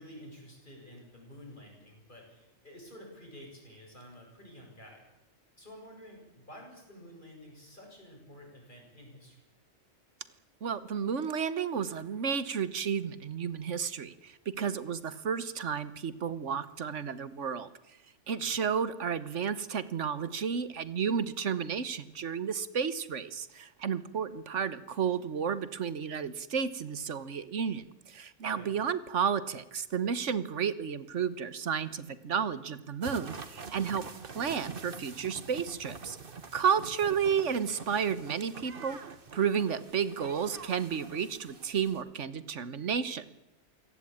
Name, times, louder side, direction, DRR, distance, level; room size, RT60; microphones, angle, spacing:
voice 1, 0.0-5.1 5.6-9.4 18.3-18.5 28.4-28.8 36.7-36.8, equal, 45° left, 0 dB, 8.4 m, -50 dB
voice 2, 10.6-17.7 18.3-34.1 34.3-36.2 36.5-39.0 39.3-43.2, right 7 dB, 85° right, 15 dB, 1.5 m, -32 dB
sound 1, 33.0-42.0, right 4 dB, 50° right, 1.6 m, -46 dB
27.5 x 17.5 x 8.9 m, 0.98 s
omnidirectional pair, 1.2 m